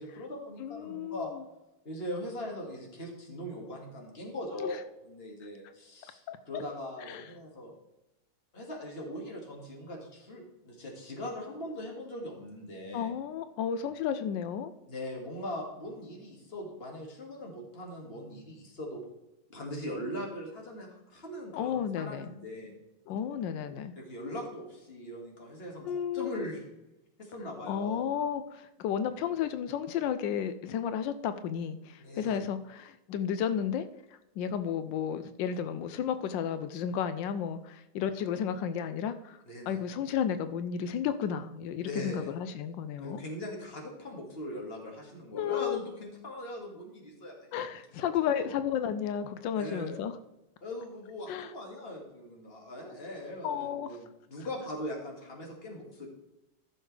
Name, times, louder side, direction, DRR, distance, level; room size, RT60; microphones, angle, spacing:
voice 1, 0.0-1.3 1.8-7.7 8.5-13.1 14.9-19.0 19.5-22.8 24.0-26.6 27.2-28.1 32.0-32.4 39.5-39.8 41.8-42.3 43.0-47.3 48.0-48.5 49.6-50.0 50.6-56.1, left 1 dB, 35° left, 0 dB, 2.1 m, -40 dB
voice 2, 0.6-1.4 4.5-4.8 6.3-6.6 7.0-7.3 12.9-14.7 21.5-22.3 23.1-23.9 25.8-26.4 27.7-33.8 34.4-39.4 39.7-43.2 45.3-45.8 47.5-50.2 51.3-51.5 53.4-53.9, left 8 dB, 90° left, 11 dB, 1.3 m, -33 dB
14.5 x 6.6 x 3.3 m, 0.93 s
omnidirectional pair, 1.9 m